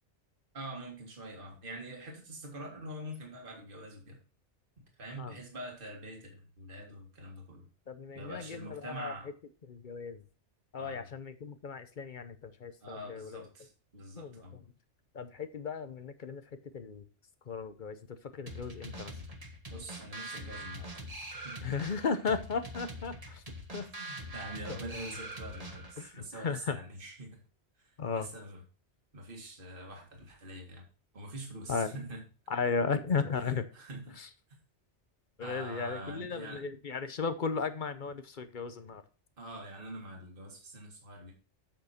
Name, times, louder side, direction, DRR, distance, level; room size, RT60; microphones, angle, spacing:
voice 1, 0.5-4.2 4.8-7.7 8.1-9.3 10.8-11.0 12.8-14.6 19.7-20.9 21.4-21.7 24.0-27.4 27.8-28.6 29.1-30.9 31.1-32.2 33.4-34.2 35.4-36.6 39.4-41.3, right 1 dB, 50° right, 0 dB, 2.1 m, -45 dB
voice 2, 7.9-9.2 9.6-10.2 10.7-13.5 14.2-14.6 15.1-17.0 17.4-19.2 21.6-23.4 23.7-23.9 24.7-24.9 26.0-26.8 28.0-28.3 31.7-32.0 32.5-33.7 34.2-34.3 35.4-39.0, left 5 dB, 50° left, 10 dB, 0.9 m, -35 dB
sound 1, 18.5-26.1, equal, 30° right, 1.6 m, -44 dB
7.9 x 6.5 x 4.3 m, 0.36 s
omnidirectional pair, 1.2 m